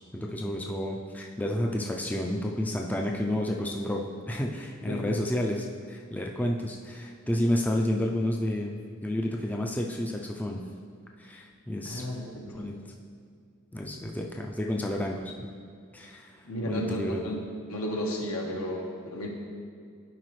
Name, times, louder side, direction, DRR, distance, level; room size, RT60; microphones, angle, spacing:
voice 1, 0.1-10.6 11.2-12.0 12.4-12.8 13.7-15.5 15.9-16.3 16.7-17.2, left 1 dB, 5° left, 0 dB, 0.4 m, -30 dB
voice 2, 4.8-5.2 11.8-12.7 16.4-17.4 17.7-19.3, equal, 80° left, 0 dB, 1.2 m, -33 dB
11.5 x 4.9 x 3.1 m, 2.2 s
head